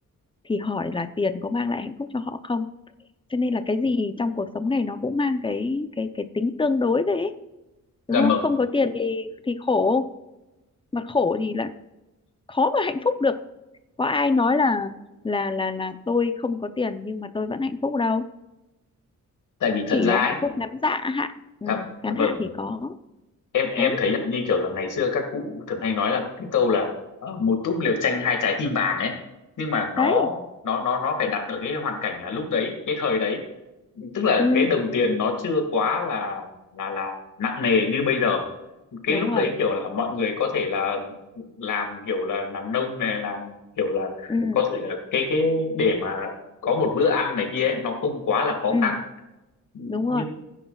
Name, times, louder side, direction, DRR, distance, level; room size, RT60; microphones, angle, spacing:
voice 1, 0.4-2.7 3.3-7.3 8.1-10.1 10.9-11.7 12.5-13.4 14.0-14.9 15.2-18.3 19.9-21.3 21.6-23.0 23.8-24.0 30.0-30.3 34.4-34.7 39.1-39.5 44.3-44.6 48.7-49.0 49.9-50.2, left 3 dB, 15° left, 10 dB, 0.6 m, -25 dB
voice 2, 8.1-8.5 19.6-20.4 21.7-22.4 23.5-26.9 27.2-29.1 29.6-30.4 30.7-33.4 34.0-38.4 39.0-46.3 46.6-49.0 49.7-50.3, left 5 dB, 80° left, 3 dB, 2.0 m, -25 dB
17.0 x 9.9 x 2.4 m, 1.0 s
wide cardioid pair, 150°, 31 cm